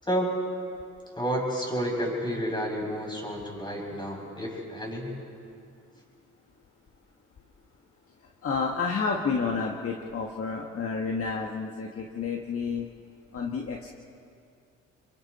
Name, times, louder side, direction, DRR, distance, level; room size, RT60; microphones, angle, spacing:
voice 1, 0.0-0.3 1.2-5.1, equal, 15° left, -2 dB, 7.0 m, -30 dB
voice 2, 8.4-12.9 13.3-13.9, left 5 dB, 50° left, 0 dB, 1.6 m, -30 dB
29.5 x 23.0 x 4.3 m, 2.4 s
cardioid pair, 90°, 30 cm